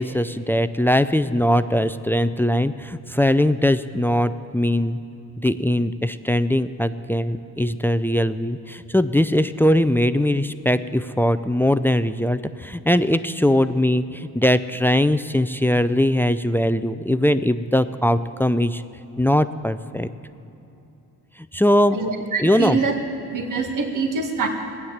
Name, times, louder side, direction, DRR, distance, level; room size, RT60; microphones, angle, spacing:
voice 1, 0.0-5.0 5.4-18.8 19.2-20.1 21.5-22.0 22.4-22.8, left 1 dB, 5° left, 12 dB, 0.5 m, -20 dB
voice 2, 21.9-22.9 23.3-24.5, right 4 dB, 60° right, 3 dB, 2.0 m, -24 dB
18.0 x 9.5 x 7.3 m, 3.0 s
cardioid pair, 80°, 36 cm